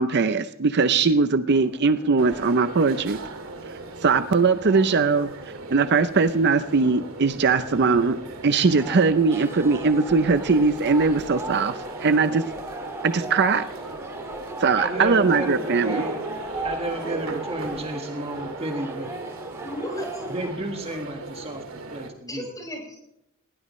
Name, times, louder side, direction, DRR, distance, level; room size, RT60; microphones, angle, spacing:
voice 1, 0.0-3.2 4.0-5.3 5.7-12.5 13.0-13.7 14.6-16.0, right 4 dB, 50° right, 11 dB, 0.6 m, -20 dB
sound 1, 1.5-20.5, right 1 dB, 15° right, 2.1 m, -38 dB
sound 2, 2.2-22.1, right 3 dB, 75° right, 2.3 m, -38 dB
voice 2, 14.8-16.2 16.6-19.1 20.3-22.5, right 1 dB, 30° right, 3 dB, 1.7 m, -32 dB
voice 3, 19.6-20.2 22.3-23.0, equal, 15° left, 0 dB, 5.6 m, -35 dB
19.5 x 17.5 x 3.2 m, 0.80 s
head